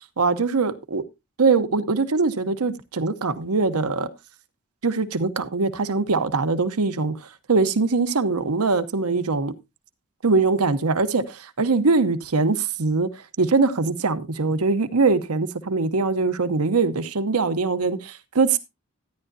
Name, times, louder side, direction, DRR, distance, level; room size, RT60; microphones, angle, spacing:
voice 1, 0.2-1.0 1.4-4.1 4.8-7.2 7.5-9.5 10.2-13.1 13.4-18.6, right 4 dB, 90° right, 0.9 m, -22 dB
13.0 x 10.0 x 2.6 m
head